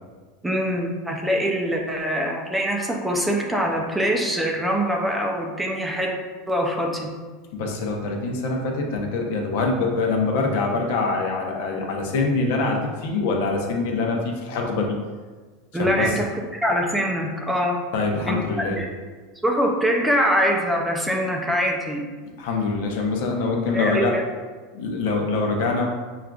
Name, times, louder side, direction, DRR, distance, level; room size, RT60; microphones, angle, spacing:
voice 1, 0.4-6.2 6.5-7.1 15.7-17.8 18.3-18.9 19.4-22.1 23.7-24.2, equal, 5° right, 0 dB, 0.5 m, -23 dB
voice 2, 7.5-14.9 15.8-16.2 17.9-18.8 22.2-24.2 24.7-25.9, left 3 dB, 70° left, 1 dB, 0.7 m, -24 dB
6.3 x 2.4 x 2.3 m, 1.4 s
supercardioid pair, 140°, 0 cm